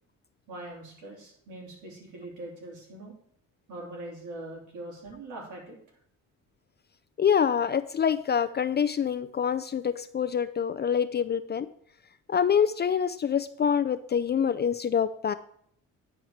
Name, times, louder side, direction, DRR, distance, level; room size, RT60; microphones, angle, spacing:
voice 1, 0.5-3.1 3.7-5.8, right 2 dB, 85° right, -3 dB, 3.6 m, -42 dB
voice 2, 7.2-11.7 12.3-15.3, left 7 dB, 35° left, 12 dB, 0.4 m, -26 dB
10.0 x 4.6 x 5.7 m, 0.67 s
cardioid pair, 90°, 30 cm